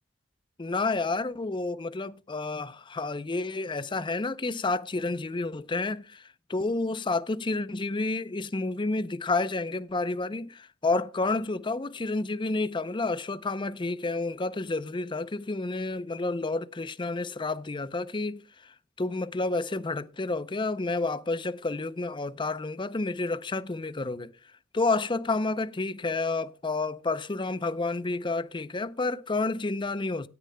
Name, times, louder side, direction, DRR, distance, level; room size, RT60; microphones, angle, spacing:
voice 1, 0.6-24.3 24.7-30.3, left 3 dB, 25° left, 0.6 m, -30 dB
17.5 x 9.9 x 2.2 m
head